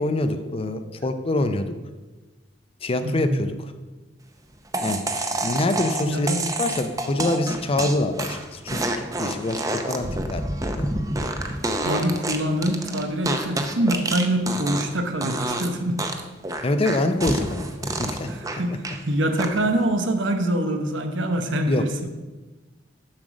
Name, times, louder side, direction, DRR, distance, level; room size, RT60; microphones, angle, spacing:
voice 1, 0.0-1.7 2.8-3.7 4.8-5.0 5.4-10.9 16.6-18.3 18.7-18.8 21.7-21.8, left 2 dB, 30° left, 9 dB, 0.5 m, -25 dB
voice 2, 3.0-3.4 6.0-6.5 11.8-16.0 18.3-22.1, right 1 dB, 75° right, 6 dB, 0.9 m, -25 dB
sound 1, 4.7-15.0 15.2-15.7 16.0-19.0 19.4-19.8, right 2 dB, 20° right, 0.6 m, -28 dB
7.3 x 6.4 x 5.1 m, 1.2 s
head